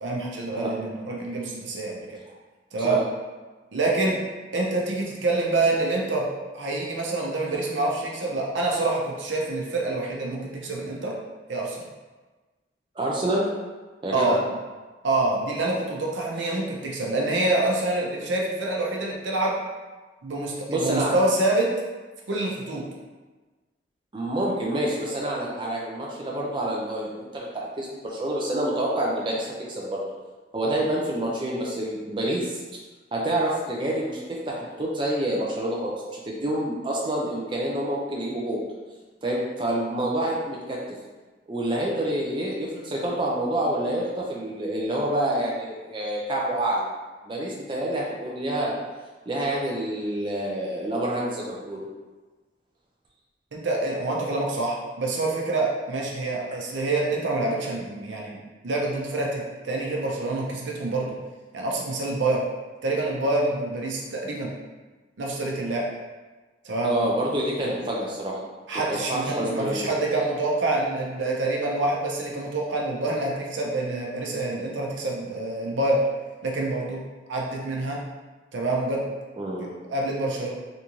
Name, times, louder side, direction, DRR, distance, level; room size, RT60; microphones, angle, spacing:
voice 1, 0.0-2.2 2.7-3.0 3.7-4.2 4.5-6.3 6.5-11.1 11.5-11.9 14.1-14.4 15.0-19.6 20.2-21.7 22.3-22.8 53.5-61.1 61.5-62.4 62.8-64.5 65.2-65.9 66.6-66.9 67.6-67.8 68.7-76.0 76.4-77.0 77.3-78.0 78.5-79.0 79.6-80.5, right 2 dB, 80° right, -2 dB, 0.6 m, -26 dB
voice 2, 13.0-13.4 14.0-14.4 20.7-21.1 24.1-30.0 30.5-32.6 33.1-38.6 39.2-40.8 41.5-46.9 47.3-48.7 49.3-51.8 66.8-68.4 69.1-69.9 79.4-79.7, right 1 dB, 25° right, -4 dB, 0.4 m, -27 dB
3.5 x 2.6 x 2.9 m, 1.3 s
head